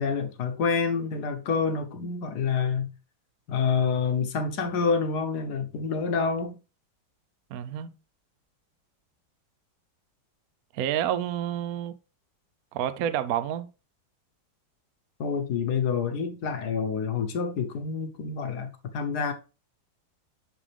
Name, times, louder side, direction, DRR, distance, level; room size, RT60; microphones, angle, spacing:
voice 1, 0.0-2.9 3.5-6.6 15.2-19.3, left 5 dB, 65° left, 1.4 m, -27 dB
voice 2, 7.5-7.9 10.7-11.9 12.7-13.7, right 10 dB, 65° right, 0.9 m, -29 dB
11.0 x 3.7 x 3.4 m
omnidirectional pair, 2.0 m